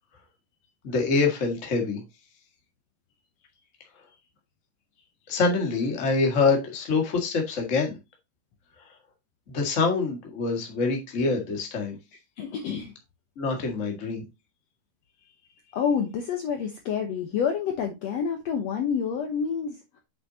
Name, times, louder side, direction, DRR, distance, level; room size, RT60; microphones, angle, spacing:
voice 1, 0.8-2.0 5.3-8.0 9.5-12.0 13.4-14.2, left 4 dB, 30° left, 1.6 m, -25 dB
voice 2, 12.4-12.9 15.7-20.0, left 7 dB, 65° left, 1.8 m, -28 dB
7.9 x 6.2 x 2.7 m
omnidirectional pair, 3.7 m